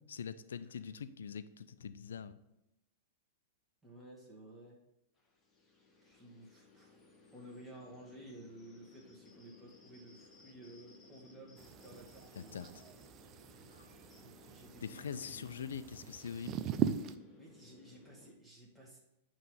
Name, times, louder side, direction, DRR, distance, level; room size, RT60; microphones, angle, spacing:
voice 1, 0.1-2.4 12.4-12.8 13.7-13.9 14.8-16.6, left 7 dB, 70° left, 14 dB, 0.4 m, -44 dB
voice 2, 3.8-4.8 6.0-7.0 7.3-12.8 13.4-15.6 17.4-19.0, right 1 dB, 5° right, -5 dB, 2.0 m, -54 dB
sound 1, 5.2-18.3, left 3 dB, 20° left, 1.3 m, -61 dB
sound 2, 11.6-17.1, right 9 dB, 35° right, 0.4 m, -40 dB
9.2 x 3.2 x 5.3 m, 0.90 s
figure-of-eight pair, 100°, 0 cm